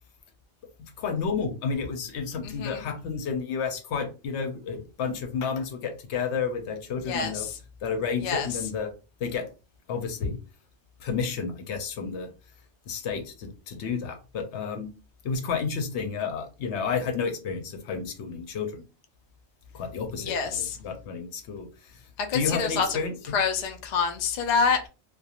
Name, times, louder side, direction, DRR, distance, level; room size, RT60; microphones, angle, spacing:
voice 1, 0.8-7.5 7.8-8.9 9.2-9.5 9.9-10.4 11.0-12.3 12.9-14.9 15.2-18.8 19.7-22.0 22.3-23.4, left 5 dB, 80° left, 0.9 m, -31 dB
voice 2, 2.4-2.8 7.1-7.6 8.2-8.5 20.2-20.8 22.2-23.0 23.3-24.9, left 5 dB, 60° left, 0.5 m, -27 dB
2.4 x 2.3 x 2.8 m
omnidirectional pair, 1.2 m